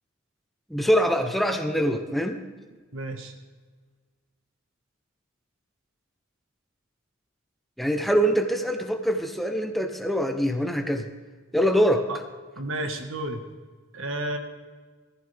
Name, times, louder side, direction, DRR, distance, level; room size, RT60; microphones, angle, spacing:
voice 1, 0.7-2.4 7.8-11.1 11.5-12.1, equal, ahead, 5 dB, 0.8 m, -24 dB
voice 2, 2.9-3.3 12.1-12.2 12.5-13.4 13.9-14.4, right 1 dB, 75° right, 5 dB, 1.6 m, -31 dB
19.5 x 14.0 x 3.5 m, 1.4 s
head